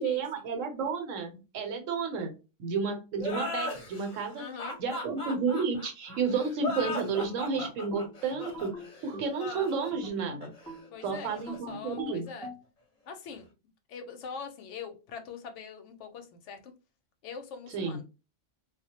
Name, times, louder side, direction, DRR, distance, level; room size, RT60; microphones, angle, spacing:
voice 1, 0.0-2.3 2.6-4.4 4.8-8.7 9.0-10.5 11.0-12.3 17.7-18.0, right 5 dB, 80° right, 5 dB, 1.1 m, -31 dB
sound 1, 3.2-12.5, left 2 dB, 35° left, 0.8 m, -38 dB
voice 2, 4.3-4.8 10.9-12.5 13.1-13.5 13.9-16.7 17.2-18.0, left 6 dB, 75° left, 7 dB, 0.9 m, -43 dB
sound 2, 6.8-9.4 9.9-12.6, equal, 5° left, 0.4 m, -44 dB
2.3 x 2.0 x 2.7 m, 0.30 s
omnidirectional pair, 1.3 m